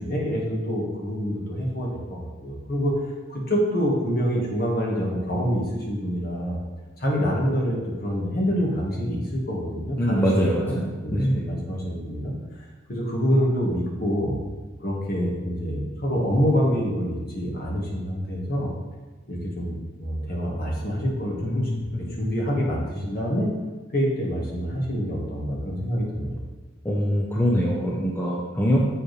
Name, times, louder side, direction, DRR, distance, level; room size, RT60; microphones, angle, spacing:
voice 1, 0.0-2.9 3.3-6.6 7.0-10.3 10.6-12.3 12.9-14.4 14.8-18.7 19.3-21.9 22.2-23.5 23.9-26.4, equal, 45° left, -3 dB, 1.7 m, -26 dB
voice 2, 10.0-11.4 21.4-21.8 22.0-22.2 26.8-28.8, equal, 10° left, -3 dB, 0.6 m, -23 dB
7.2 x 6.7 x 3.3 m, 1.2 s
head